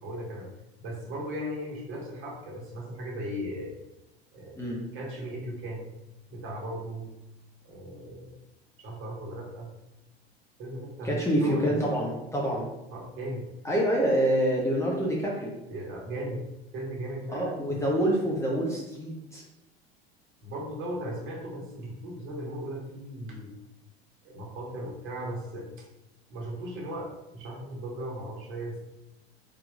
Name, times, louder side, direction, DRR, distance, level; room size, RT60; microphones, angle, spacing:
voice 1, 0.0-0.5 0.8-3.7 4.3-4.6 4.9-5.9 6.3-7.1 7.6-8.4 8.8-9.7 10.6-12.0 12.9-13.4 15.7-16.4 16.7-17.8 20.4-23.5 24.2-25.8 26.3-28.8, right 1 dB, 40° right, -2 dB, 1.4 m, -37 dB
voice 2, 11.0-12.7 13.6-15.5 17.3-19.4, right 1 dB, 10° left, -3 dB, 0.7 m, -26 dB
4.3 x 4.0 x 2.4 m, 0.93 s
figure-of-eight pair, 80°, 32 cm